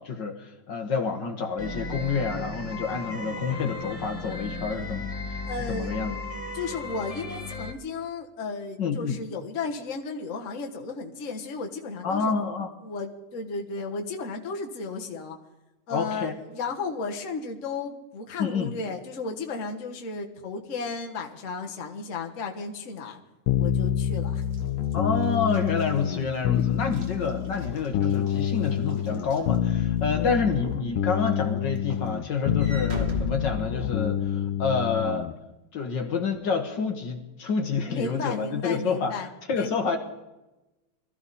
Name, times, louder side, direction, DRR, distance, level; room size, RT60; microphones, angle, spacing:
voice 1, 0.0-6.2 8.8-9.2 12.0-12.7 15.9-16.4 18.4-18.7 24.9-35.3 35.7-40.0, left 5 dB, 60° left, 5 dB, 1.9 m, -28 dB
sound 1, 1.6-7.7, left 3 dB, 20° left, 1.1 m, -35 dB
voice 2, 5.5-5.9 6.5-12.3 12.8-15.4 15.9-23.2 23.6-24.4 26.8-26.9 30.2-30.3 37.9-39.3 39.6-39.7, left 4 dB, 40° left, 2 dB, 1.6 m, -34 dB
sound 2, 23.5-35.3, left 10 dB, 75° left, 1.6 m, -27 dB
Walk footsteps / Slam, 24.4-30.1 30.6-30.9 31.3-34.3, equal, 30° right, 2.4 m, -40 dB
21.5 x 14.5 x 4.2 m, 1.0 s
omnidirectional pair, 2.3 m